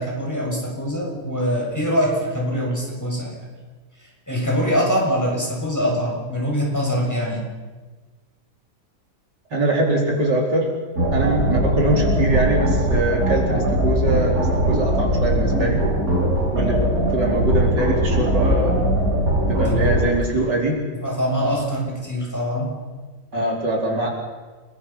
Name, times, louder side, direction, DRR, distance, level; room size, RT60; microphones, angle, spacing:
voice 1, 0.0-3.4 4.3-7.5 19.7-19.9 20.9-22.7, equal, 10° left, -3 dB, 7.0 m, -23 dB
voice 2, 9.5-10.7 11.1-15.9 16.5-18.8 19.5-20.8 23.3-24.1, right 1 dB, 75° right, -1 dB, 4.9 m, -22 dB
sound 1, 11.0-20.1, right 1 dB, 55° right, 6.3 m, -20 dB
30.0 x 21.5 x 5.8 m, 1.3 s
omnidirectional pair, 1.9 m